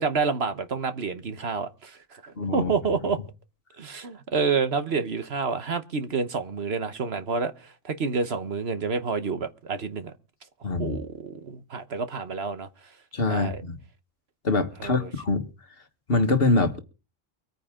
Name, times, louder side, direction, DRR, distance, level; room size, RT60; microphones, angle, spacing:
voice 1, 0.0-3.2 3.8-10.1 10.6-12.7 13.3-13.6 14.8-15.1, right 4 dB, 55° right, 1.2 m, -29 dB
voice 2, 2.4-2.7 10.6-11.0 13.1-13.8 14.4-15.5 16.1-16.8, left 3 dB, 50° left, 1.6 m, -24 dB
24.0 x 9.5 x 3.7 m
omnidirectional pair, 1.3 m